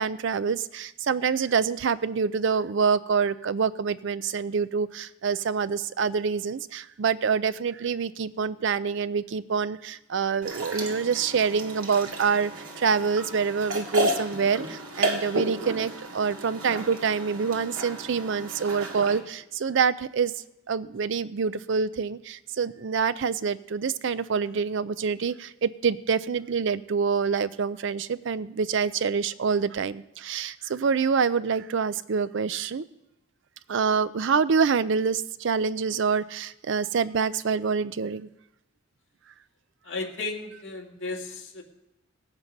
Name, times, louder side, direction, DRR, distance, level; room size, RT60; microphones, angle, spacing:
voice 1, 0.0-12.5 12.8-32.8 33.7-38.3, right 5 dB, 55° right, 16 dB, 0.4 m, -26 dB
sound 1, 10.4-19.2, right 1 dB, 80° right, 2.1 m, -33 dB
voice 2, 39.8-41.6, left 3 dB, 55° left, 0 dB, 2.2 m, -34 dB
17.5 x 8.2 x 5.3 m, 0.88 s
head